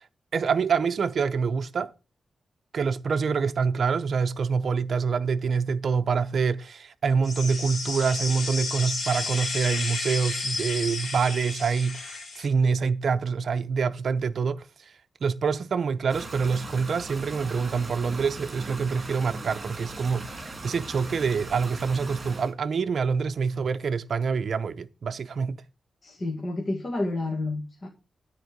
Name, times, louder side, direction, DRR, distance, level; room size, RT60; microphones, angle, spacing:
voice 1, 0.3-1.9 2.7-14.9 15.2-25.6, right 5 dB, 60° right, 0.6 m, -26 dB
sound 1, 7.2-12.5, left 3 dB, 60° left, 3.0 m, -32 dB
sound 2, 16.1-22.5, right 2 dB, 35° right, 3.5 m, -39 dB
voice 2, 26.0-27.9, left 2 dB, 35° left, 1.9 m, -30 dB
12.5 x 4.4 x 6.6 m
wide cardioid pair, 120°, 0 cm